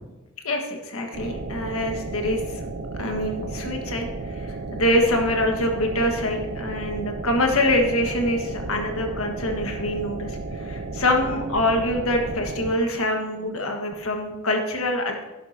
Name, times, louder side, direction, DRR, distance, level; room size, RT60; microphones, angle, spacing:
voice 1, 0.4-2.6 3.0-15.2, left 1 dB, 70° left, 3 dB, 1.6 m, -25 dB
sound 1, 1.1-12.8, right 3 dB, 50° right, 0.7 m, -33 dB
11.5 x 11.0 x 2.8 m, 1.1 s
head